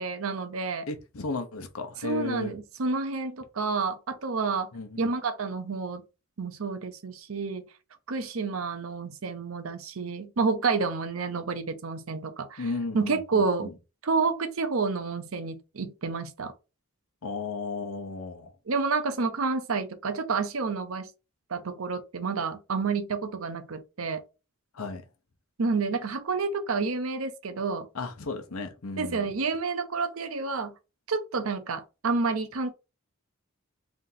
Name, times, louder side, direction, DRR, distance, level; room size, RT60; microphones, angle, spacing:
voice 1, 0.0-0.9 2.0-4.7 5.0-6.0 6.4-7.6 8.1-12.7 12.9-13.7 14.0-16.5 18.7-21.1 21.5-24.2 25.6-27.9 29.0-30.7 31.1-32.7, right 4 dB, 75° right, 0.7 m, -29 dB
voice 2, 0.9-2.6 4.7-5.0 12.6-13.7 17.2-18.5 24.7-25.0 27.9-29.3, left 3 dB, 85° left, 0.9 m, -34 dB
3.5 x 2.8 x 3.9 m
head